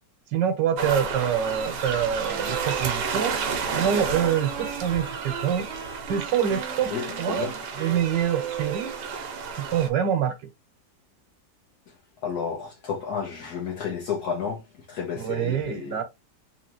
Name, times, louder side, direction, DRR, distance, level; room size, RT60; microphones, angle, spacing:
voice 1, 0.3-3.3 3.7-5.6 6.1-6.9 7.2-7.5 7.8-8.9 9.7-10.3 15.1-16.0, right 9 dB, 90° right, 1.5 m, -25 dB
sound 1, 0.8-9.9, right 5 dB, 75° right, 1.4 m, -32 dB
Wind instrument woodwind instrument, 2.3-9.2, right 8 dB, 50° right, 0.9 m, -37 dB
voice 2, 6.9-7.6 12.2-14.6 14.9-16.0, left 6 dB, 65° left, 1.4 m, -31 dB
3.9 x 2.9 x 2.9 m
omnidirectional pair, 1.9 m